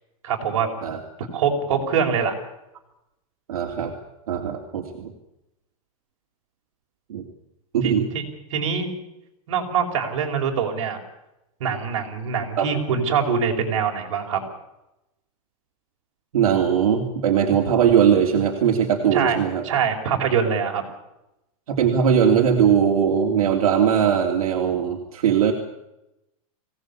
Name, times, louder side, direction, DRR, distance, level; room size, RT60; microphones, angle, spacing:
voice 1, 0.2-0.7 1.3-2.3 7.8-8.2 8.5-8.9 9.5-11.0 11.6-14.4 19.1-19.4 19.6-20.8, right 6 dB, 55° right, 2 dB, 5.1 m, -23 dB
voice 2, 3.5-3.9 4.3-5.1 7.1-7.2 7.7-8.1 12.6-12.7 16.3-19.6 21.7-25.5, right 8 dB, 75° right, 1 dB, 3.1 m, -20 dB
23.0 x 17.5 x 8.5 m, 0.91 s
supercardioid pair, 175°, 19 cm